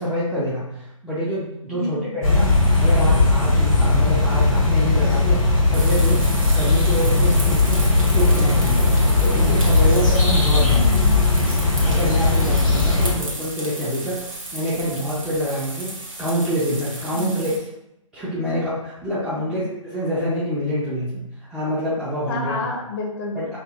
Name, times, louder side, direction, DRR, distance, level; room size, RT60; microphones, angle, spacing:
voice 1, 0.0-8.9 9.2-10.9 11.8-14.2 14.5-17.5 18.1-22.6 23.3-23.6, equal, 5° right, -11 dB, 0.5 m, -26 dB
voice 2, 1.7-2.2 10.5-11.2 17.1-17.4 19.4-19.6 22.3-23.6, left 2 dB, 50° left, 0 dB, 0.7 m, -29 dB
sound 1, 2.2-13.1, left 2 dB, 90° left, 1.2 m, -18 dB
sound 2, 5.7-17.6, right 2 dB, 80° right, 1.1 m, -34 dB
4.8 x 2.5 x 2.4 m, 0.84 s
figure-of-eight pair, 130°, 17 cm